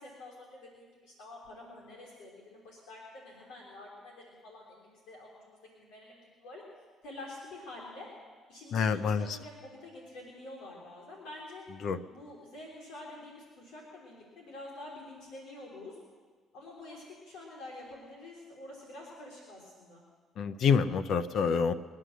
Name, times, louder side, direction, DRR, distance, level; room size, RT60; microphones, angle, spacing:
voice 1, 0.0-6.6 7.0-8.1 8.5-11.7 12.1-16.0 16.5-20.0, left 2 dB, 80° left, -3 dB, 3.5 m, -48 dB
voice 2, 8.7-9.2 11.8-12.0 20.4-21.7, left 6 dB, 65° left, 12 dB, 0.8 m, -27 dB
22.0 x 9.6 x 6.6 m, 1.5 s
supercardioid pair, 75°, 0 cm